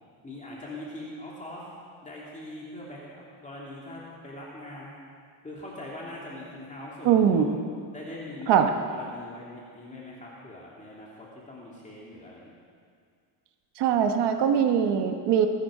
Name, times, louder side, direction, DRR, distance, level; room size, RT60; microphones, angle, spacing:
voice 1, 0.2-1.6 2.0-4.9 5.4-7.5 7.9-12.5, left 1 dB, 15° left, -5 dB, 2.5 m, -42 dB
voice 2, 7.0-7.5 8.5-8.7 13.8-15.5, right 8 dB, 70° right, 5 dB, 1.3 m, -21 dB
20.0 x 11.0 x 4.9 m, 2.1 s
cardioid pair, 130°, 42 cm